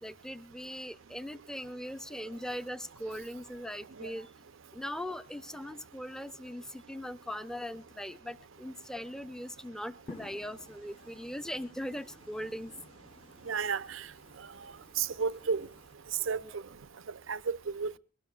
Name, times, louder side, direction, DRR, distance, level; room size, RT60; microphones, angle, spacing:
voice 1, 0.0-4.3 4.7-12.7 16.4-16.5, equal, 5° left, 0.6 m, -40 dB
sound 1, 10.1-15.9, left 3 dB, 30° left, 0.9 m, -54 dB
voice 2, 13.5-14.0 15.0-15.7 16.3-16.6 17.3-18.0, right 5 dB, 90° right, 0.7 m, -32 dB
22.5 x 18.0 x 2.3 m
head